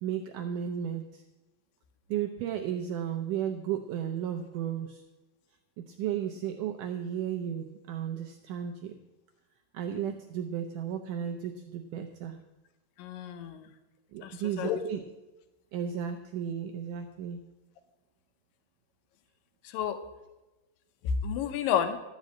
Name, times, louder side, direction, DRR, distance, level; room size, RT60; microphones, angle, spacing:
voice 1, 0.0-1.2 2.1-5.0 5.8-9.0 9.7-12.4 14.1-15.0 15.7-17.4, right 9 dB, 90° right, 4 dB, 1.8 m, -34 dB
voice 2, 13.0-13.7 14.2-14.8 19.6-20.0 21.0-22.0, left 8 dB, 75° left, 9 dB, 2.3 m, -30 dB
13.0 x 5.4 x 8.4 m, 1.1 s
omnidirectional pair, 4.5 m